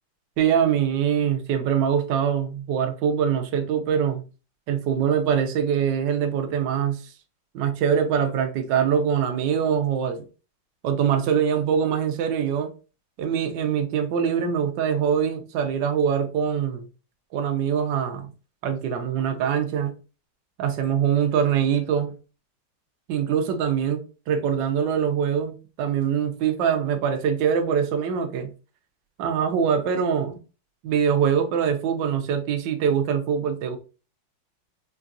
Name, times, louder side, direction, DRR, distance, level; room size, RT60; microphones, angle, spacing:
voice 1, 0.4-4.2 4.7-7.1 7.5-10.2 10.8-12.7 13.2-16.8 17.3-18.3 18.6-19.9 20.6-22.1 23.1-28.5 29.2-30.4 30.8-33.8, right 7 dB, 70° right, 1.2 m, -23 dB
4.6 x 2.3 x 2.5 m
omnidirectional pair, 2.3 m